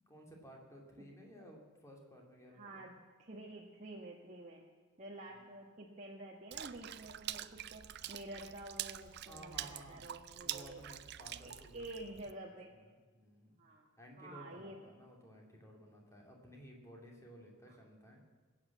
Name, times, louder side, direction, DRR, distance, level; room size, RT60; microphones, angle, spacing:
voice 1, 0.1-2.8 5.3-5.4 9.3-10.1 10.4-11.8 12.4-13.6 14.0-18.2, equal, 15° left, 0 dB, 2.8 m, -56 dB
voice 2, 2.5-2.9 3.2-4.6 5.0-10.8 11.4-12.7 13.6-13.9 14.2-14.9 17.7-17.8, right 1 dB, 35° right, -2 dB, 1.4 m, -49 dB
Water / Splash splatter, 6.5-12.3, right 12 dB, 50° right, 0.5 m, -45 dB
21.0 x 8.9 x 7.3 m, 1.4 s
head